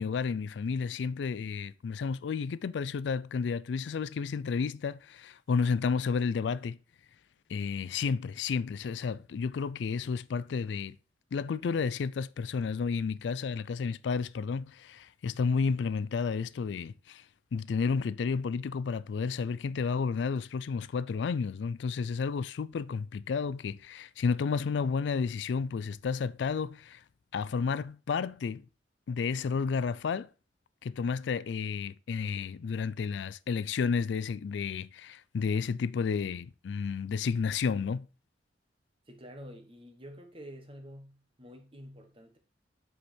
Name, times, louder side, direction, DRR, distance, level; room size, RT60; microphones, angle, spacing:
voice 1, 0.0-6.8 7.5-11.0 11.3-17.2 17.5-27.0 27.3-28.6 29.1-30.3 30.8-38.1, left 5 dB, 70° left, 0.4 m, -31 dB
voice 2, 39.1-42.4, equal, 30° right, 1.3 m, -48 dB
7.9 x 4.9 x 4.4 m
head